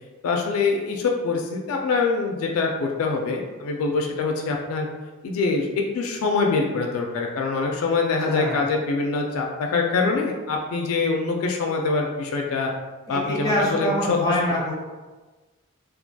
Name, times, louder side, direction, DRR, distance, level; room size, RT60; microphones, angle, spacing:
voice 1, 0.2-4.9 5.2-12.7 13.1-14.2, left 4 dB, 75° left, 1 dB, 0.3 m, -24 dB
voice 2, 8.2-8.6 13.1-14.7, left 1 dB, 15° left, -5 dB, 0.5 m, -24 dB
2.3 x 2.1 x 2.6 m, 1.3 s
head